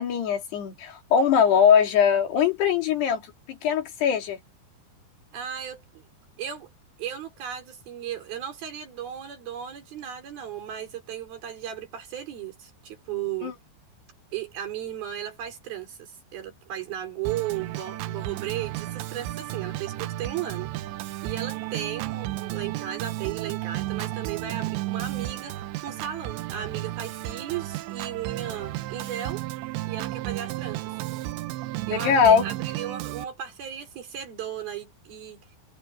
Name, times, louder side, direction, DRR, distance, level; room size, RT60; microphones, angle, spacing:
voice 1, 0.0-3.2 3.5-4.4 13.4-13.5 31.9-32.5, left 7 dB, 65° left, 4.9 m, -21 dB
voice 2, 5.3-6.0 6.4-6.7 7.0-13.6 14.3-20.7 21.2-29.4 29.9-31.0 31.9-35.4, right 10 dB, 55° right, 6.1 m, -35 dB
Organ, 17.3-33.3, right 16 dB, 85° right, 3.1 m, -33 dB
omnidirectional pair, 5.1 m